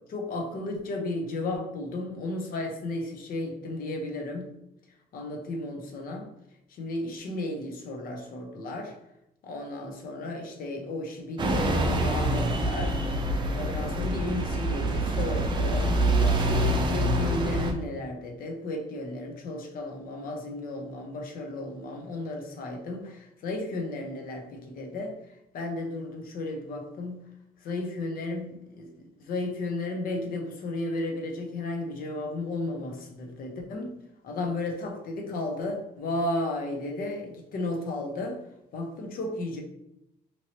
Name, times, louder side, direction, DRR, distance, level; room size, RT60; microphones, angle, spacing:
voice 1, 0.0-4.5 5.1-6.3 6.7-8.9 9.4-13.0 13.5-27.2 27.7-28.5 28.8-33.9 34.2-38.4 38.7-39.6, left 2 dB, 60° left, 3 dB, 0.7 m, -34 dB
sound 1, 11.4-17.7, right 1 dB, 30° right, 0.5 m, -26 dB
3.0 x 2.7 x 2.9 m, 0.82 s
cardioid pair, 110°, 17 cm